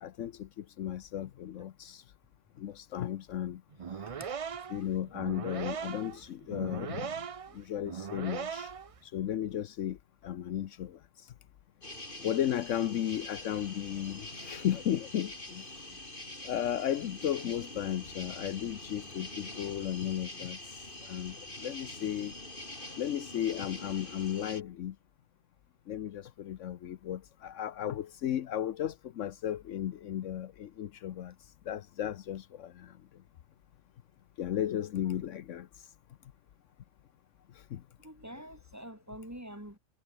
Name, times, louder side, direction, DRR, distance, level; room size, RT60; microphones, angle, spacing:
voice 1, 0.0-2.0 2.6-3.6 4.7-7.1 7.5-8.7 9.1-10.0 10.2-11.0 12.2-15.6 16.4-20.6 21.1-21.3 21.6-22.3 23.0-24.9 25.9-31.3 31.7-32.9 34.4-35.7 37.7-37.8, left 10 dB, 75° left, 1.1 m, -34 dB
sound 1, 3.7-9.0, right 6 dB, 45° right, 0.5 m, -39 dB
sound 2, 11.8-24.6, left 1 dB, 40° left, 5.1 m, -45 dB
voice 2, 38.0-39.8, right 1 dB, 10° right, 2.7 m, -46 dB
omnidirectional pair, 1.3 m